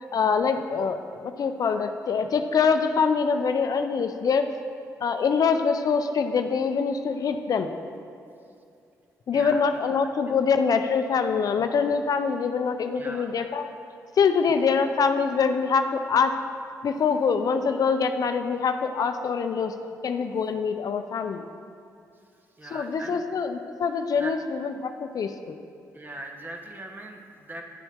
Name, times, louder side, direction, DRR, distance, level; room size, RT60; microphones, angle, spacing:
voice 1, 0.1-4.5 5.0-7.7 9.3-13.7 14.2-16.3 16.8-19.7 20.0-21.4 22.7-25.6, left 5 dB, 60° left, 7 dB, 0.5 m, -24 dB
voice 2, 9.3-9.6 10.3-10.4 13.0-13.3 22.6-23.2 24.2-24.3 25.9-27.6, right 2 dB, 30° right, 2 dB, 1.1 m, -40 dB
10.0 x 7.1 x 3.5 m, 2.5 s
supercardioid pair, 60°, 7 cm